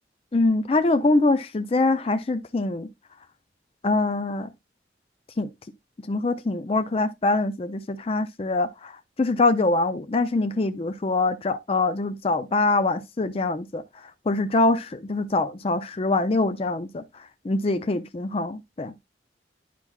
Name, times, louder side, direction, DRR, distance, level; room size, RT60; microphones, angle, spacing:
voice 1, 0.3-2.9 3.8-4.5 5.4-5.5 6.1-8.9 9.2-13.8 14.3-17.0 17.4-18.9, left 2 dB, 30° left, 0.4 m, -24 dB
9.8 x 5.8 x 2.3 m
head